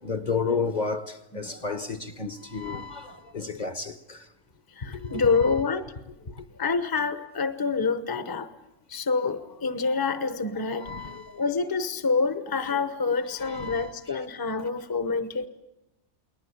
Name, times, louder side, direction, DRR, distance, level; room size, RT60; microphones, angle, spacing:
voice 1, 0.0-4.3 4.8-5.5 6.3-6.5 10.8-11.4 13.4-13.9 14.6-14.7, left 4 dB, 40° left, 1.2 m, -32 dB
voice 2, 1.3-1.8 2.7-2.8 3.5-3.6 4.7-5.9 6.3-8.5 8.9-15.5, left 4 dB, 20° left, 1.0 m, -27 dB
29.5 x 20.5 x 8.4 m
omnidirectional pair, 1.2 m